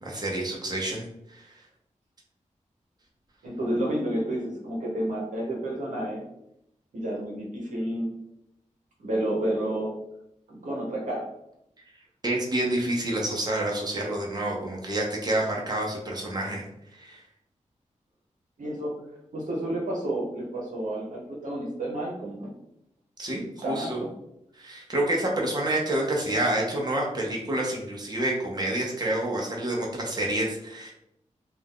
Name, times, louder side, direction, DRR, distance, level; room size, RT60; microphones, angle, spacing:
voice 1, 0.0-1.5 12.2-16.7 17.0-17.2 23.2-24.0 24.6-30.9, right 1 dB, 30° right, -2 dB, 0.9 m, -28 dB
voice 2, 3.4-6.2 6.9-8.1 9.0-9.9 10.5-11.2 18.6-19.0 19.3-22.5 23.6-24.1, right 1 dB, 80° right, -2 dB, 0.9 m, -30 dB
2.6 x 2.4 x 3.6 m, 0.80 s
cardioid pair, 60°, 13 cm